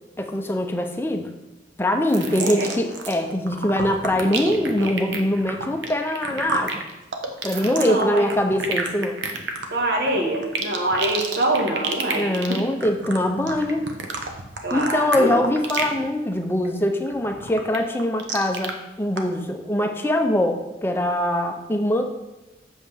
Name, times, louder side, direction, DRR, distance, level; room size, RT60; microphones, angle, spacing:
voice 1, 0.2-1.3 1.8-6.8 7.4-9.2 12.1-13.8 14.7-22.0, left 1 dB, 10° left, 4 dB, 0.6 m, -23 dB
voice 2, 2.1-2.7 7.5-8.3 9.7-12.6 14.6-15.4, right 1 dB, 65° right, 0 dB, 1.5 m, -25 dB
sound 1, 2.1-3.2 3.5-16.0 16.3-16.7 17.1-18.7 19.2-19.3, right 4 dB, 90° right, 0.9 m, -30 dB
7.8 x 6.3 x 3.5 m, 1.0 s
head